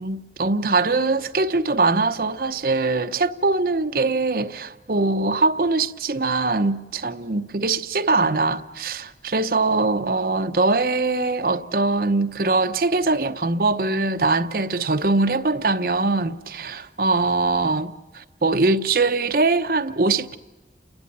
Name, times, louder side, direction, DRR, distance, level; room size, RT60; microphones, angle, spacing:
voice 1, 0.0-20.4, right 3 dB, 55° right, 0.8 m, -22 dB
30.0 x 11.5 x 9.4 m
head